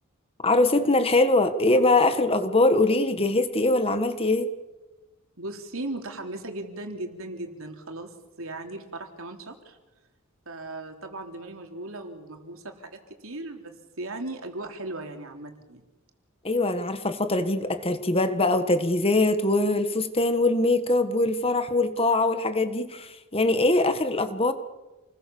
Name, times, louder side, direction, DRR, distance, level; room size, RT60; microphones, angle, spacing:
voice 1, 0.4-4.5 16.4-24.5, left 2 dB, 25° left, 9 dB, 1.6 m, -22 dB
voice 2, 5.4-9.8 10.5-15.8, right 2 dB, 65° right, 4 dB, 3.6 m, -37 dB
29.0 x 21.0 x 7.1 m, 1.1 s
head